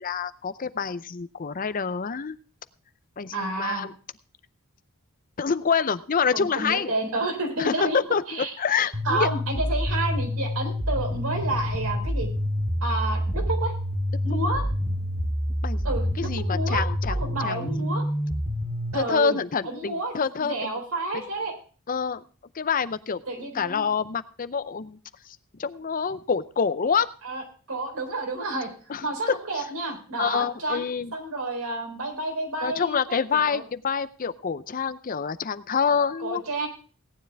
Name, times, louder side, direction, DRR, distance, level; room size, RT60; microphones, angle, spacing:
voice 1, 0.0-2.4 3.2-3.9 5.4-6.9 7.6-9.3 15.6-15.9 16.2-17.7 18.9-20.7 21.9-22.2 22.6-23.2 23.5-25.0 25.6-27.1 28.9-29.6 30.2-31.1 32.6-36.4, left 6 dB, 40° left, 13 dB, 0.5 m, -27 dB
voice 2, 3.3-3.9 6.3-8.0 8.3-8.5 9.0-12.3 12.8-13.7 14.2-14.6 15.8-18.0 18.9-19.4 19.6-21.5 23.3-23.9 27.2-27.4 27.7-28.7 29.0-33.6 36.2-36.7, right 2 dB, 80° right, 3 dB, 4.2 m, -30 dB
sound 1, 8.9-18.9, equal, 40° right, 2.2 m, -27 dB
sound 2, 10.8-16.5, equal, 10° left, 1.4 m, -45 dB
17.5 x 9.9 x 3.4 m, 0.37 s
head